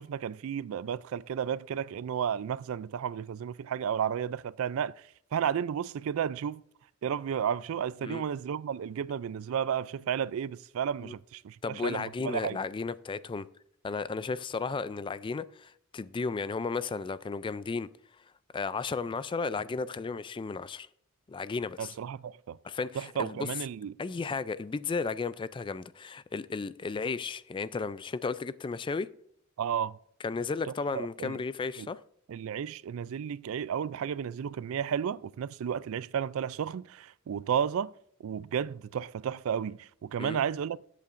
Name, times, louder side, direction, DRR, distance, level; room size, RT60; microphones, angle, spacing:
voice 1, 0.0-4.9 5.3-6.6 7.0-12.6 21.8-22.6 23.0-23.9 29.6-30.0 30.9-31.4 31.8-31.9 32.3-37.9 38.2-40.9, right 8 dB, 70° right, 0.3 m, -32 dB
voice 2, 11.6-13.5 13.8-17.9 18.5-20.9 21.3-21.9 22.6-23.5 24.0-29.1 30.2-32.0 40.2-40.4, left 4 dB, 25° left, 0.3 m, -34 dB
20.0 x 8.3 x 2.5 m
head